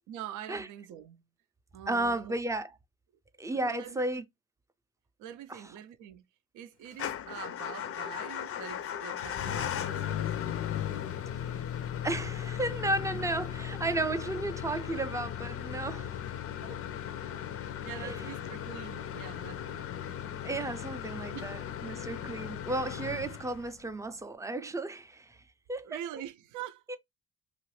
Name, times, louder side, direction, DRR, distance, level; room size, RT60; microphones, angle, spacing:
voice 1, 0.1-1.2 1.7-2.4 3.5-4.0 5.2-6.2 6.5-10.3 11.2-11.3 13.1-13.3 14.0-14.1 16.0-16.1 16.6-16.8 17.3-19.9 21.3-21.5 22.2-22.3 25.8-26.8, right 10 dB, 85° right, 0.5 m, -45 dB
voice 2, 1.9-2.7 3.4-4.2 5.5-5.6 11.3-11.6 12.0-16.2 16.7-16.8 18.0-18.2 20.4-25.4 25.7-26.0 26.9-27.0, right 2 dB, 10° right, 0.4 m, -33 dB
Motor vehicle (road) / Engine starting / Idling, 6.9-23.9, left 10 dB, 50° left, 0.4 m, -37 dB
2.9 x 2.4 x 3.1 m
cardioid pair, 90°, 30 cm